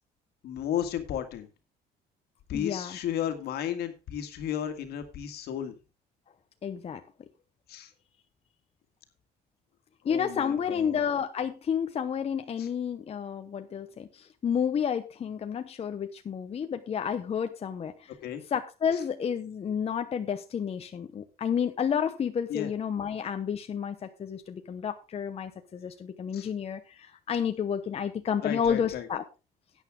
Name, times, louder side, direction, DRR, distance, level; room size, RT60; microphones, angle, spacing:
voice 1, 0.4-1.5 2.5-5.7 7.7-7.9 10.1-11.1 12.6-12.7 18.2-18.4 22.5-22.7 26.3-26.5 28.4-29.1, left 10 dB, 70° left, 7 dB, 1.9 m, -33 dB
voice 2, 2.5-3.0 6.6-7.0 10.0-18.1 18.5-29.2, left 7 dB, 35° left, 7 dB, 0.9 m, -31 dB
12.0 x 9.1 x 3.6 m, 0.29 s
cardioid pair, 110°, 17 cm